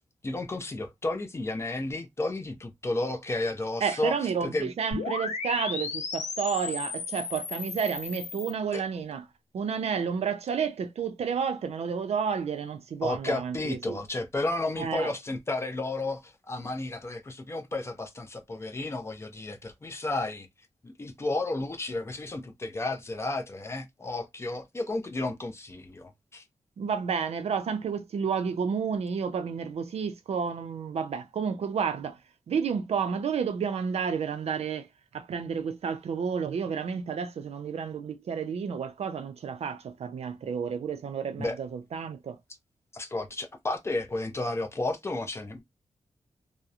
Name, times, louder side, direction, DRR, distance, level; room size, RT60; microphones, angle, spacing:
voice 1, 0.2-4.1 4.4-4.7 8.7-8.8 13.0-20.5 20.8-26.4 41.4-41.6 42.9-45.6, left 2 dB, 25° left, 0.4 m, -32 dB
voice 2, 3.8-9.2 9.5-14.0 14.8-15.1 26.8-32.2 32.5-34.9 35.1-42.4, right 6 dB, 65° right, 0.4 m, -31 dB
sound 1, 4.9-8.5, left 4 dB, 85° left, 0.7 m, -35 dB
2.7 x 2.0 x 2.3 m
wide cardioid pair, 170°, 12 cm